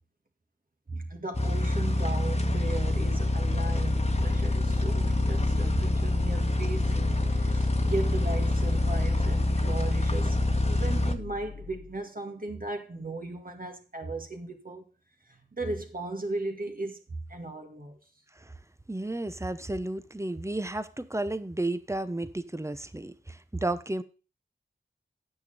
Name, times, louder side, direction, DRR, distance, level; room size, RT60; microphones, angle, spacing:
voice 1, 0.9-10.4 10.6-14.8 15.2-18.0, right 2 dB, 45° right, 2.2 m, -37 dB
sound 1, 1.3-11.2, left 1 dB, 35° left, 1.3 m, -26 dB
sound 2, 2.3-12.0, left 5 dB, 75° left, 0.9 m, -35 dB
voice 2, 18.9-24.0, right 2 dB, 15° right, 1.0 m, -32 dB
9.4 x 7.0 x 5.4 m
wide cardioid pair, 45°, 19 cm